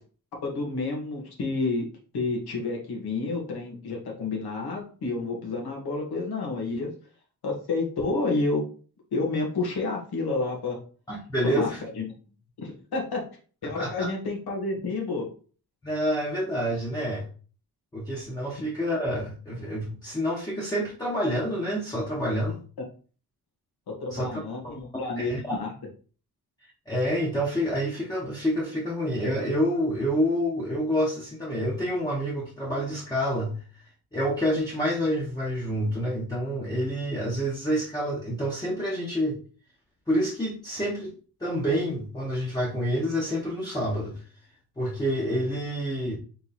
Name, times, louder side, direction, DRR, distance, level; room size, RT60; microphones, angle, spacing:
voice 1, 0.4-1.8 2.1-6.9 7.4-8.7 9.1-10.8 11.4-12.0 12.6-13.2 13.6-15.3 24.0-25.7, left 3 dB, 75° left, 0 dB, 1.6 m, -29 dB
voice 2, 11.1-11.8 13.8-14.1 15.8-17.3 17.9-22.6 24.1-24.8 25.2-25.6 26.6-33.6 34.1-39.4 40.1-41.1 41.4-44.2 44.8-46.2, equal, 10° left, -4 dB, 0.9 m, -28 dB
3.8 x 3.1 x 4.1 m, 0.40 s
wide cardioid pair, 155°, 38 cm